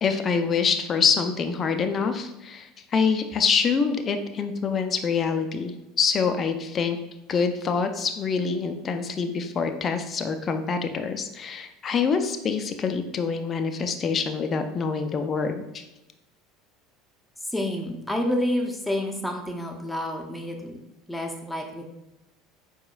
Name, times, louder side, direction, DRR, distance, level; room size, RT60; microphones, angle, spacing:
voice 1, 0.0-7.0 7.3-15.8, left 5 dB, 35° left, 7 dB, 0.5 m, -25 dB
voice 2, 17.5-20.8 21.1-21.9, left 1 dB, 5° left, 2 dB, 0.8 m, -29 dB
4.8 x 4.5 x 2.3 m, 0.93 s
hypercardioid pair, 75°, 0 cm